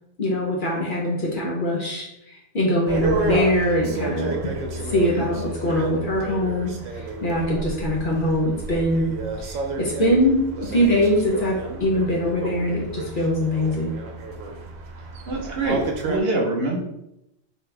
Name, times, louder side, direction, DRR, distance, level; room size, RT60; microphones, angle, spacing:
voice 1, 0.2-4.3 4.8-9.1 9.4-13.9, equal, 50° left, -2 dB, 0.8 m, -23 dB
sound 1, 2.9-16.2, right 2 dB, 90° right, 1.0 m, -31 dB
voice 2, 15.3-16.8, right 2 dB, 60° right, -1 dB, 1.0 m, -25 dB
3.5 x 2.9 x 3.3 m, 0.84 s
omnidirectional pair, 1.3 m